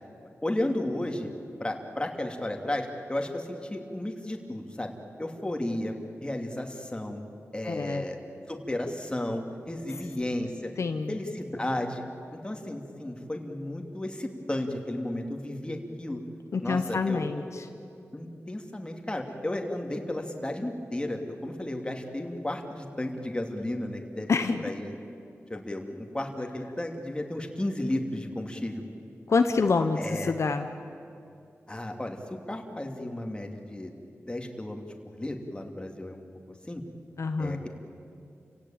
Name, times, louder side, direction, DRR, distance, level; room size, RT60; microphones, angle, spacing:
voice 1, 0.4-1.3 1.6-4.9 5.2-5.9 6.2-7.2 7.5-8.2 8.5-10.7 11.1-12.0 12.3-16.2 16.6-17.4 18.1-24.3 24.6-24.9 25.5-28.8 30.0-30.4 31.7-32.2 32.5-33.9 34.3-34.8 35.1-36.2 36.6-36.8 37.4-37.7, left 1 dB, 20° left, 3 dB, 2.9 m, -33 dB
voice 2, 7.6-8.0 10.8-11.2 16.5-17.6 24.3-24.7 29.3-30.7 37.2-37.6, left 4 dB, 65° left, 7 dB, 1.0 m, -27 dB
29.5 x 17.0 x 8.9 m, 2.5 s
wide cardioid pair, 75°, 5 cm